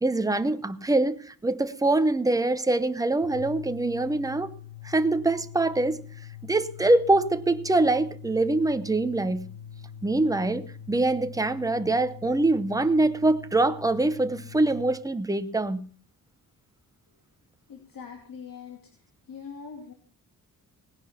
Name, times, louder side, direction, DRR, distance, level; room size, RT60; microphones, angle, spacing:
voice 1, 0.0-4.5 4.8-6.0 6.4-9.5 10.0-15.9, right 2 dB, 10° right, 0.7 m, -24 dB
sound 1, 3.1-15.0, left 8 dB, 90° left, 6.6 m, -44 dB
voice 2, 17.7-18.8 19.3-19.9, left 6 dB, 65° left, 2.7 m, -42 dB
18.5 x 10.5 x 5.7 m
wide cardioid pair, 165°, 36 cm